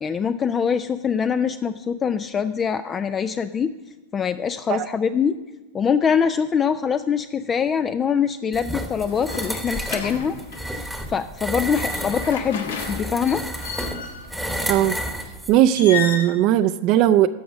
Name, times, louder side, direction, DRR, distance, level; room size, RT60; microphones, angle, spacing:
voice 1, 0.0-3.7 4.1-5.4 5.7-10.4 10.7-13.4, left 7 dB, 25° left, 12 dB, 0.3 m, -23 dB
sound 1, 8.5-15.6, equal, ahead, 1.1 m, -31 dB
sound 2, 9.0-10.7 11.5-14.3 15.6-16.3, left 6 dB, 85° left, 1.3 m, -33 dB
voice 2, 14.7-15.0 15.5-17.3, right 12 dB, 45° right, 11 dB, 0.4 m, -17 dB
13.5 x 5.0 x 7.0 m, 1.1 s
hypercardioid pair, 120°, 0 cm